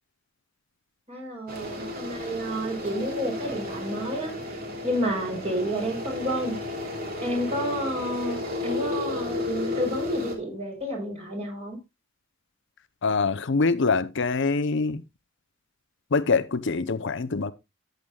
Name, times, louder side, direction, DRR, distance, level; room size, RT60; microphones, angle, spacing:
voice 1, 1.1-4.6 4.8-6.6 7.2-11.8, equal, 30° right, 4.7 m, -30 dB
sound 1, 1.5-10.4, left 2 dB, 50° right, 2.8 m, -33 dB
voice 2, 13.0-15.0 16.1-17.5, left 4 dB, 60° left, 0.7 m, -24 dB
14.0 x 8.0 x 2.3 m
head